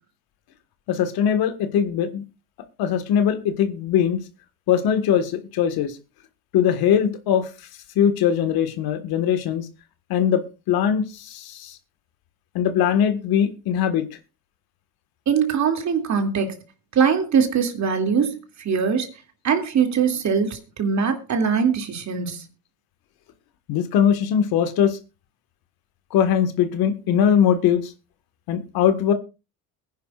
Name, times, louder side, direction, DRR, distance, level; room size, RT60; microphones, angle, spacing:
voice 1, 0.9-2.2 2.8-4.2 4.7-5.9 6.5-7.5 7.9-9.7 10.1-11.8 12.5-14.1 23.7-25.0 26.1-27.9 28.5-29.1, left 8 dB, 65° left, 1.7 m, -21 dB
voice 2, 15.3-16.6 16.9-18.4 18.6-19.1 19.4-22.4, right 6 dB, 45° right, 2.6 m, -22 dB
22.0 x 10.0 x 2.4 m
supercardioid pair, 80°, 40 cm